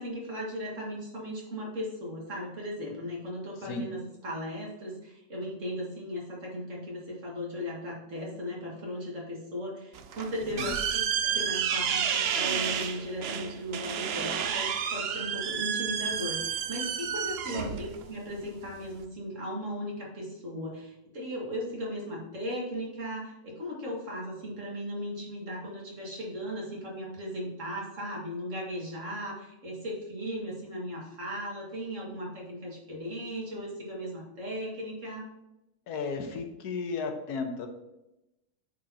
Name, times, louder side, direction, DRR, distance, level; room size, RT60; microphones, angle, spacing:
voice 1, 0.0-10.8 11.2-35.2, equal, 55° right, -3 dB, 2.1 m, -37 dB
sound 1, 9.9-19.0, right 8 dB, 80° right, 0.5 m, -31 dB
voice 2, 35.9-37.7, left 4 dB, 80° left, 5 dB, 1.4 m, -34 dB
8.8 x 4.4 x 2.8 m, 0.91 s
omnidirectional pair, 1.7 m